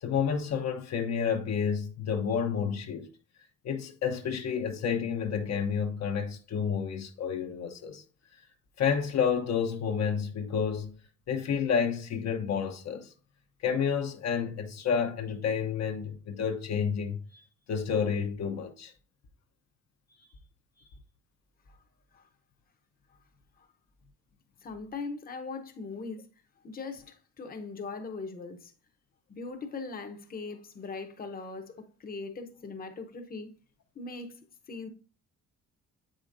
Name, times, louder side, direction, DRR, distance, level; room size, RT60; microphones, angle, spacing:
voice 1, 0.0-3.1 3.6-8.0 8.8-10.9 11.3-13.1 13.6-17.4 17.7-18.9, left 7 dB, 60° left, 0.8 m, -30 dB
voice 2, 24.6-26.3 26.6-28.7 29.3-33.5 33.9-34.9, left 4 dB, 30° left, 0.8 m, -40 dB
7.5 x 5.1 x 2.5 m
cardioid pair, 90°, 30 cm